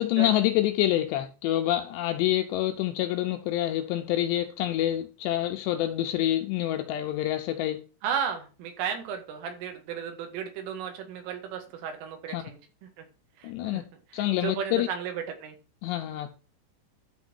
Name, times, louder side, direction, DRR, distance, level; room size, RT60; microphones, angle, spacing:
voice 1, 0.0-7.8 12.3-12.4 13.4-13.9 14.1-14.9 15.8-16.4, left 13 dB, 80° left, 2.5 m, -27 dB
voice 2, 8.0-12.6 13.0-13.1 13.4-13.8 14.1-15.6, right 7 dB, 80° right, 4.4 m, -34 dB
12.0 x 4.5 x 6.3 m
omnidirectional pair, 5.6 m